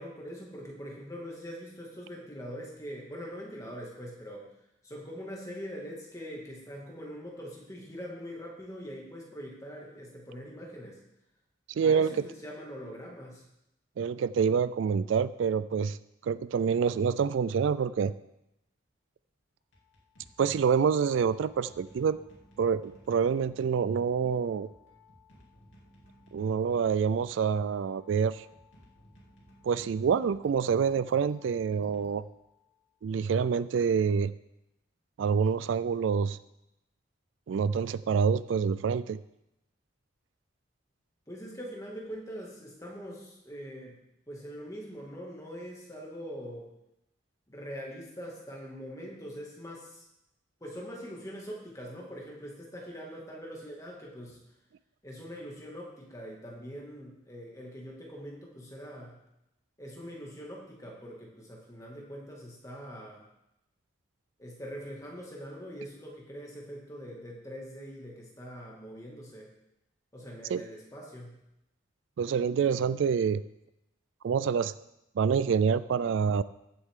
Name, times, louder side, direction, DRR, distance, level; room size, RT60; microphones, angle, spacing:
voice 1, 0.0-4.5 4.8-11.0 11.8-13.4 41.3-44.0 44.3-46.7 47.5-50.1 50.6-54.4 55.0-59.2 59.8-63.2 64.4-69.5 70.1-71.4, equal, 15° left, -2 dB, 2.0 m, -43 dB
voice 2, 11.8-12.1 14.0-16.0 16.2-18.1 20.4-22.2 22.6-24.7 26.3-28.5 29.6-32.2 33.0-34.3 35.2-36.4 37.5-39.2 70.5-70.6 72.2-73.4 74.2-74.7 75.2-76.4, right 6 dB, 70° right, 16 dB, 0.3 m, -27 dB
sound 1, 19.6-32.8, left 1 dB, 70° left, 2.6 m, -58 dB
14.5 x 7.7 x 3.7 m, 0.86 s
head